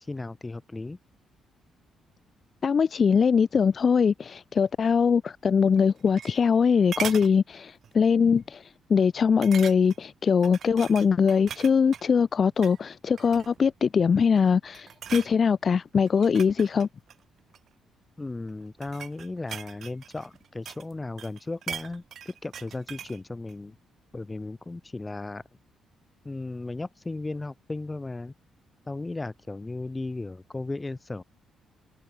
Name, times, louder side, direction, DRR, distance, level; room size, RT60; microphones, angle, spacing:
voice 1, 0.1-1.0 18.2-23.7 24.1-25.4 26.2-28.3 28.9-31.2, left 2 dB, 20° left, 1.2 m, -35 dB
voice 2, 2.6-16.9, left 6 dB, 45° left, 0.3 m, -22 dB
sound 1, 5.8-6.6 6.9-7.3 7.8-8.1 8.4-8.5 9.4-10.1 10.4-12.1 12.5-12.8 13.2-13.7 14.2-14.5 14.7-15.3 16.1-17.7 18.5-20.9 21.2-23.2 23.5-23.6, right 8 dB, 60° right, 1.6 m, -39 dB
cardioid pair, 90°, 0 cm